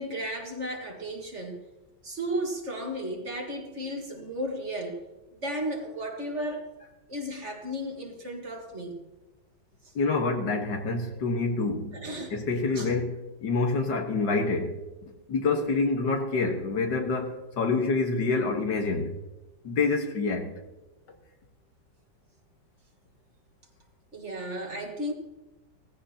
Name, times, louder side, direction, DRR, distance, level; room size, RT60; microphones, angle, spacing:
voice 1, 0.0-1.6 2.0-5.0 5.4-6.7 7.1-9.0 11.9-12.4 12.7-12.9 24.1-25.1, equal, 40° right, 1.9 m, -34 dB
voice 2, 10.0-12.0 12.3-19.2 19.6-20.5, left 3 dB, 75° left, 2.0 m, -27 dB
17.5 x 14.5 x 2.9 m
omnidirectional pair, 1.9 m